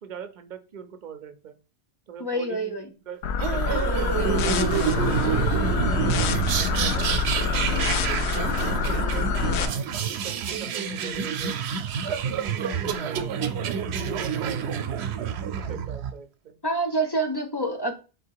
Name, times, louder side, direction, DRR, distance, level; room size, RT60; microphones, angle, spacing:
voice 1, 0.0-1.6 2.1-5.5 5.9-7.1 7.4-8.4 8.8-9.7 10.0-11.6 12.0-13.6 13.9-15.0 15.6-16.6, right 7 dB, 55° right, 10 dB, 0.6 m, -42 dB
voice 2, 2.2-2.9 9.3-9.6 16.6-17.9, right 2 dB, 35° left, 4 dB, 0.4 m, -27 dB
sound 1, 3.2-9.7, left 5 dB, 85° left, 0.9 m, -26 dB
sound 2, 3.4-16.1, right 7 dB, 85° right, 0.8 m, -28 dB
3.9 x 2.8 x 4.5 m, 0.33 s
omnidirectional pair, 1.1 m